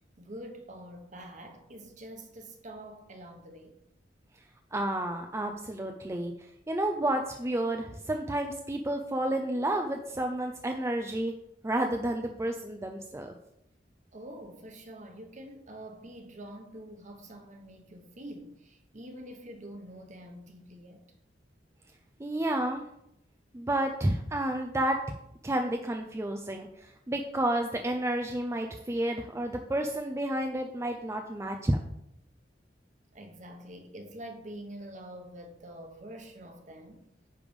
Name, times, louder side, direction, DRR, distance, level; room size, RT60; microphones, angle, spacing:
voice 1, 0.2-3.7 14.1-21.0 33.1-37.1, right 1 dB, 45° right, 1.2 m, -46 dB
voice 2, 4.7-6.3 6.7-11.3 11.6-13.3 22.2-22.8 23.5-25.0 25.4-31.8, right 1 dB, 15° right, 0.5 m, -30 dB
9.8 x 3.4 x 5.2 m
head